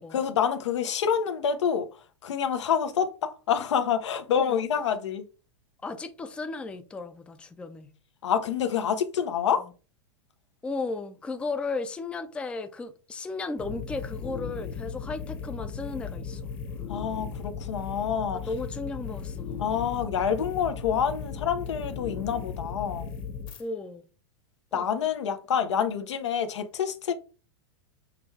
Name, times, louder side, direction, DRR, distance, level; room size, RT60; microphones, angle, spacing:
voice 1, 0.1-1.9 2.2-5.2 8.2-9.6 16.9-18.4 19.6-23.1 24.7-27.1, left 7 dB, 85° left, 0.7 m, -27 dB
voice 2, 5.8-7.9 9.6-9.7 10.6-16.6 18.3-19.7 23.6-24.0 24.7-24.9, left 3 dB, 5° left, 0.4 m, -35 dB
sound 1, 13.6-23.6, left 6 dB, 30° left, 1.0 m, -37 dB
6.0 x 2.3 x 3.1 m
hypercardioid pair, 135°, 15 cm